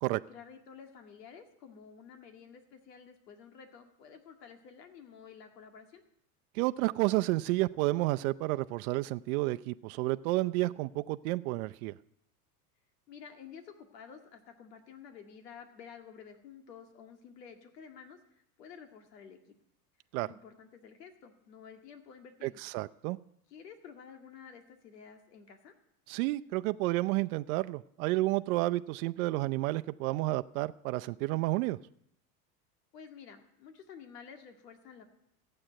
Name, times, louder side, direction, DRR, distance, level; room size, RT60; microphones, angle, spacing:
voice 1, 0.3-6.0 13.1-19.4 20.2-22.6 23.5-25.7 32.9-35.0, left 7 dB, 85° left, 5 dB, 2.1 m, -51 dB
voice 2, 6.5-12.0 20.1-20.3 22.4-23.2 26.1-31.8, right 19 dB, 65° right, 11 dB, 0.6 m, -31 dB
15.5 x 7.8 x 8.9 m, 0.75 s
hypercardioid pair, 100°, 47 cm